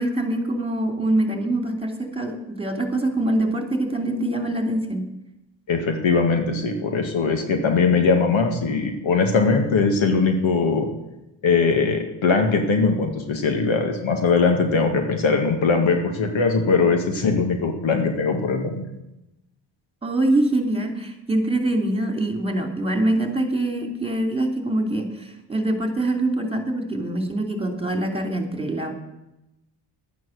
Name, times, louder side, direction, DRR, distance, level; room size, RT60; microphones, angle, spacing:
voice 1, 0.0-5.0 20.0-28.9, right 1 dB, 10° right, 4 dB, 2.8 m, -24 dB
voice 2, 5.7-10.9 11.4-18.9, left 4 dB, 65° left, 5 dB, 1.9 m, -20 dB
11.5 x 9.3 x 6.4 m, 0.94 s
supercardioid pair, 50°, 49 cm